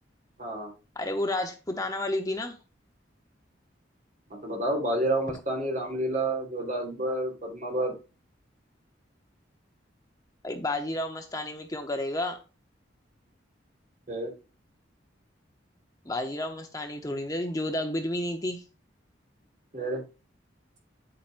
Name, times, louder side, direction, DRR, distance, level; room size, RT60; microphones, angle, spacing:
voice 1, 0.4-0.7 4.3-7.9 14.1-14.3 19.7-20.0, right 1 dB, 45° right, 3.8 m, -29 dB
voice 2, 1.0-2.6 10.4-12.4 16.1-18.6, left 1 dB, 20° left, 0.9 m, -31 dB
9.0 x 8.8 x 2.6 m
head